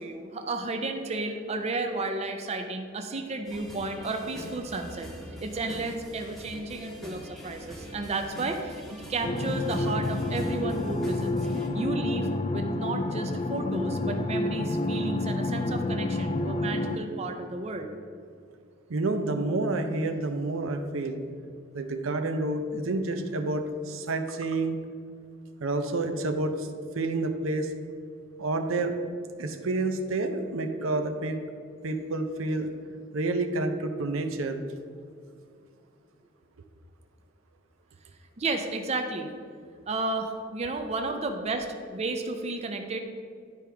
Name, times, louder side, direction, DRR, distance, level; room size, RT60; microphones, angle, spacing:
voice 1, 0.0-5.1 5.4-8.8 9.1-11.3 11.7-17.9 38.4-39.3 39.9-43.0, right 2 dB, 30° right, 5 dB, 0.5 m, -32 dB
sound 1, 3.4-11.7, equal, ahead, 1.0 m, -44 dB
sound 2, 9.2-17.0, left 2 dB, 30° left, 0.4 m, -29 dB
voice 2, 18.9-21.2 21.7-24.8 25.6-27.7 28.4-28.9 29.4-31.4 31.8-32.7 33.1-34.6, right 2 dB, 80° right, 7 dB, 0.6 m, -29 dB
10.5 x 4.8 x 3.4 m, 2.3 s
head